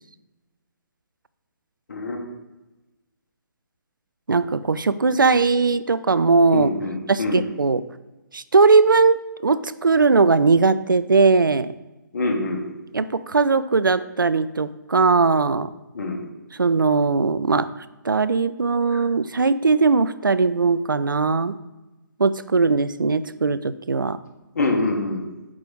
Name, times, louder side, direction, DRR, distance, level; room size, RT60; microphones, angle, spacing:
voice 1, 1.9-2.2 6.5-7.5 12.1-12.6 15.9-16.2 18.9-19.0 24.5-25.2, left 2 dB, 55° left, 2 dB, 1.5 m, -25 dB
voice 2, 4.3-6.7 7.1-7.8 8.3-9.2 9.4-11.7 12.9-15.7 16.6-17.7 18.0-21.5 22.2-24.2, right 4 dB, 80° right, 15 dB, 0.4 m, -19 dB
8.4 x 4.8 x 4.0 m, 1.1 s
figure-of-eight pair, 140°, 11 cm